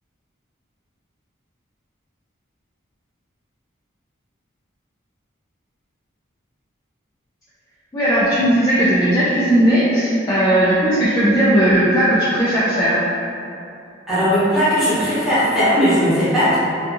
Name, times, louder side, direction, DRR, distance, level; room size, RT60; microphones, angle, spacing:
voice 1, 7.9-13.0, right 1 dB, 20° left, -11 dB, 0.3 m, -16 dB
voice 2, 14.1-16.6, equal, ahead, -14 dB, 0.8 m, -17 dB
2.6 x 2.3 x 2.6 m, 2.5 s
head